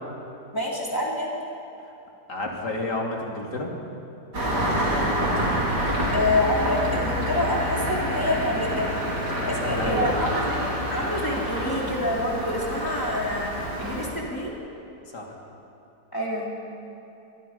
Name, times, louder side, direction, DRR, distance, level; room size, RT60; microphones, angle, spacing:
voice 1, 0.5-1.3 6.1-8.9 9.4-10.6 10.9-13.5 13.8-14.5 16.1-16.5, left 1 dB, 10° left, -4 dB, 4.0 m, -27 dB
voice 2, 2.3-3.7 9.3-10.2 15.1-15.3, left 2 dB, 80° left, 0 dB, 3.5 m, -30 dB
Engine starting, 4.3-14.1, equal, 85° right, 4.9 m, -27 dB
24.5 x 23.0 x 5.5 m, 2.8 s
omnidirectional pair, 1.8 m